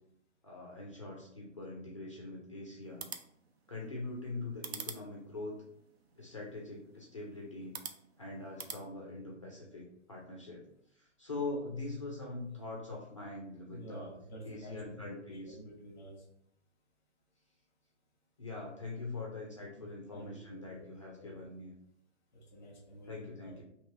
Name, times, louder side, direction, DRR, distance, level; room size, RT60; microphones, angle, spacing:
voice 1, 0.4-3.1 3.7-5.6 6.2-7.7 8.2-10.6 10.9-14.1 14.4-15.6 18.4-21.7 23.1-23.6, left 2 dB, 25° left, -2 dB, 0.4 m, -43 dB
sound 1, 2.8-8.8, right 6 dB, 60° right, 0.5 m, -48 dB
voice 2, 13.7-16.1 20.1-20.9 21.2-21.3 22.5-23.2 23.4-23.6, right 1 dB, 5° left, -2 dB, 0.8 m, -49 dB
3.1 x 2.9 x 4.2 m, 0.73 s
hypercardioid pair, 160°, 36 cm